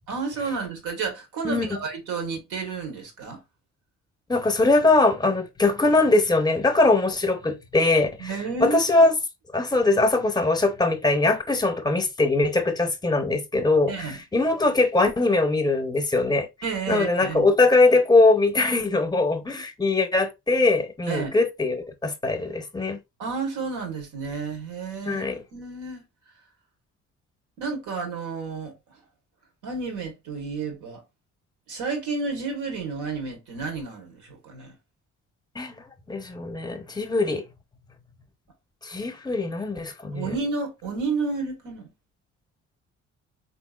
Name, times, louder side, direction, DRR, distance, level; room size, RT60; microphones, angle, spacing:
voice 1, 0.1-3.4 8.2-9.1 13.9-14.2 16.6-17.5 21.1-21.3 23.2-25.2 25.5-26.0 27.6-28.7 29.6-31.0 31.7-34.7 40.1-41.9, right 4 dB, 85° right, 1.3 m, -31 dB
voice 2, 4.3-8.3 8.6-9.1 9.5-16.5 16.9-23.0 25.1-25.3 35.6-35.8 36.1-37.4 38.8-40.3, left 2 dB, 15° left, 0.7 m, -21 dB
3.4 x 2.8 x 2.3 m
cardioid pair, 90°, 30 cm